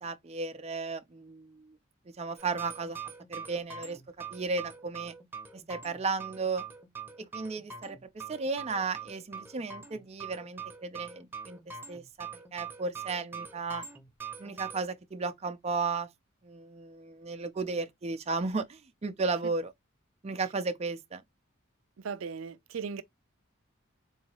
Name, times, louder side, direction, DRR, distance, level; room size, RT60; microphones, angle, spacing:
voice 1, 0.0-1.8 2.2-3.0 3.3-4.0 4.3-5.1 5.5-6.7 7.2-13.8 14.4-16.1 16.4-19.7 20.2-21.2, right 4 dB, 30° right, 0.5 m, -34 dB
sound 1, 2.4-14.8, right 6 dB, 10° right, 0.8 m, -43 dB
voice 2, 22.0-23.0, right 6 dB, 85° right, 0.5 m, -37 dB
3.9 x 2.7 x 2.8 m
head